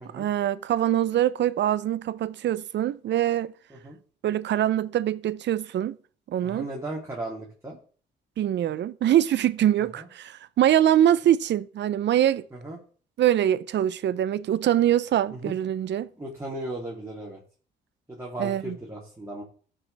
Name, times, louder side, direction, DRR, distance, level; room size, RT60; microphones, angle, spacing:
voice 1, 0.1-3.5 4.2-6.0 6.3-6.7 8.4-12.4 13.2-16.1 18.4-18.8, right 11 dB, 65° right, 0.6 m, -23 dB
voice 2, 6.4-7.8 10.0-10.1 12.5-12.8 15.3-15.5 16.1-17.4 18.1-19.4, right 1 dB, 15° right, 3.3 m, -36 dB
14.0 x 6.8 x 3.5 m
cardioid pair, 90°, 20 cm